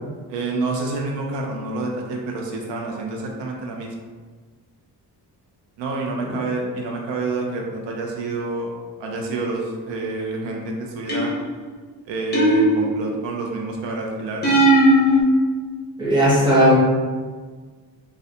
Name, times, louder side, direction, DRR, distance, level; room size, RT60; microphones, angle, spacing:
voice 1, 0.3-3.9 5.8-8.7 9.0-11.4 12.1-14.5, right 3 dB, 80° right, 0 dB, 0.5 m, -28 dB
sound 1, 11.1-11.6 12.3-13.2 14.4-15.2, right 1 dB, 25° left, 0.5 m, -16 dB
voice 2, 16.0-16.8, equal, 10° right, -8 dB, 0.7 m, -16 dB
2.4 x 2.1 x 2.7 m, 1.5 s
wide cardioid pair, 150°, 43 cm